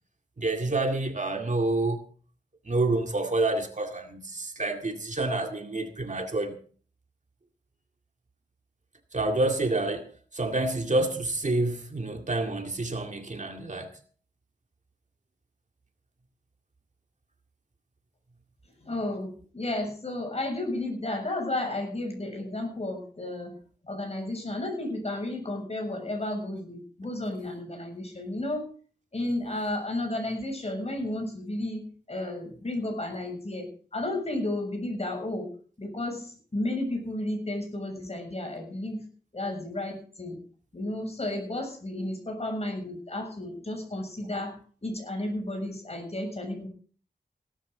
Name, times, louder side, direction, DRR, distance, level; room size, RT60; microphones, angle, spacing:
voice 1, 0.4-2.0 2.7-6.6 9.1-10.1 10.3-13.9, right 2 dB, 45° right, 2.1 m, -28 dB
voice 2, 18.8-23.6 23.8-28.7 29.1-31.8 32.1-35.5 35.8-39.0 39.3-40.4 40.7-44.6 44.8-46.7, left 1 dB, 40° left, 7.0 m, -32 dB
17.5 x 13.0 x 3.9 m
wide cardioid pair, 90°, 17 cm